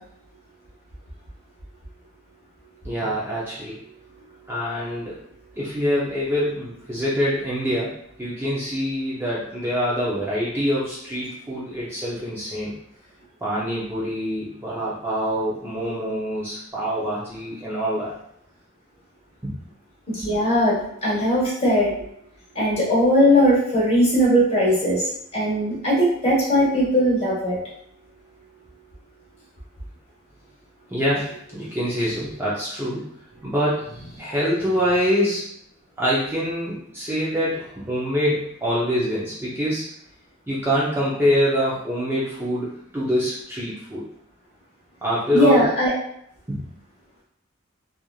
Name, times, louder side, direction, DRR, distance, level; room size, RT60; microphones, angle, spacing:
voice 1, 2.8-3.8 4.5-5.1 5.6-7.9 8.2-12.7 13.4-18.1 19.4-19.5 30.9-33.1 33.4-33.9 34.2-35.5 36.0-39.8 40.5-44.0 45.0-45.7 46.5-46.6, equal, 10° right, -8 dB, 0.5 m, -25 dB
voice 2, 20.1-21.9 22.5-25.0 25.3-27.6 45.3-45.9, equal, 30° left, -7 dB, 1.2 m, -19 dB
3.0 x 2.4 x 2.3 m, 0.71 s
head